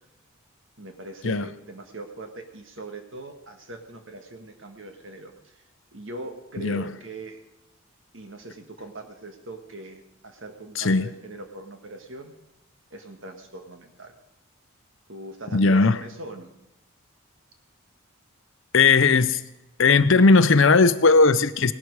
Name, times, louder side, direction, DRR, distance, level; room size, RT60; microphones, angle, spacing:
voice 1, 0.8-5.6 5.9-7.4 8.1-12.3 12.9-14.1 15.1-16.5, right 2 dB, 60° right, 5 dB, 1.8 m, -40 dB
voice 2, 10.8-11.1 15.5-16.0 18.7-19.4 19.8-21.7, left 4 dB, 60° left, 13 dB, 0.7 m, -17 dB
17.5 x 12.0 x 4.8 m, 0.93 s
head